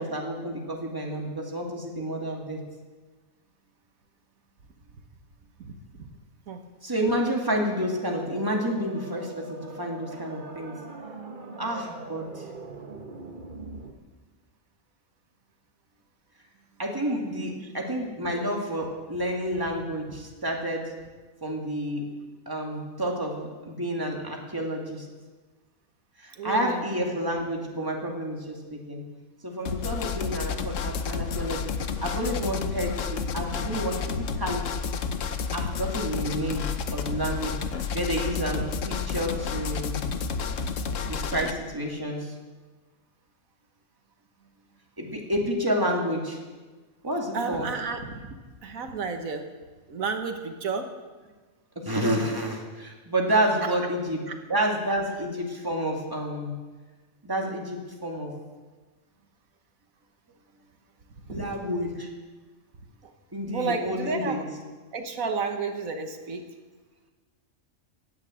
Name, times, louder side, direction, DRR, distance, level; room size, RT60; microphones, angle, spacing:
voice 1, 0.0-2.6 6.8-10.8 11.6-12.4 16.8-20.9 21.4-22.1 22.5-25.1 26.2-29.0 29.4-31.7 32.0-34.7 35.5-40.0 41.0-42.3 45.0-46.4 47.0-47.7 51.8-56.5 57.2-58.3 61.3-62.1 63.3-64.4, equal, 15° right, -1 dB, 2.4 m, -29 dB
voice 2, 5.6-6.1 6.5-6.6 17.6-17.7 26.3-26.8 33.6-33.7 34.1-34.3 47.3-48.4 48.6-49.5 49.9-50.9 61.3-61.5 63.0-63.1 63.5-64.4 64.9-66.5, right 4 dB, 90° right, 5 dB, 1.7 m, -32 dB
sound 1, 7.4-13.9, right 3 dB, 40° right, 1.4 m, -42 dB
sound 2, 29.7-41.5, left 6 dB, 70° left, 1.2 m, -31 dB
16.5 x 9.8 x 7.8 m, 1.3 s
omnidirectional pair, 1.4 m